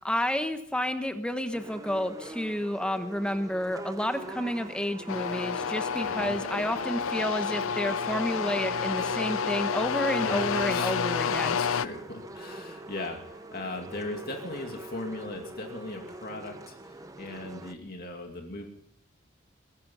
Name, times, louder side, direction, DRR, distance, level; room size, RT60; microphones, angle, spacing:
voice 1, 0.0-11.6, equal, 5° left, 8 dB, 1.0 m, -30 dB
sound 1, 1.5-17.7, right 1 dB, 15° right, 0.8 m, -44 dB
sound 2, 4.1-14.4, right 3 dB, 35° right, 4.7 m, -52 dB
sound 3, 5.1-11.9, left 6 dB, 85° left, 0.5 m, -29 dB
voice 2, 6.0-6.4 10.2-11.0 11.3-18.7, left 2 dB, 50° left, 3 dB, 2.4 m, -38 dB
22.5 x 11.5 x 5.5 m, 0.70 s
head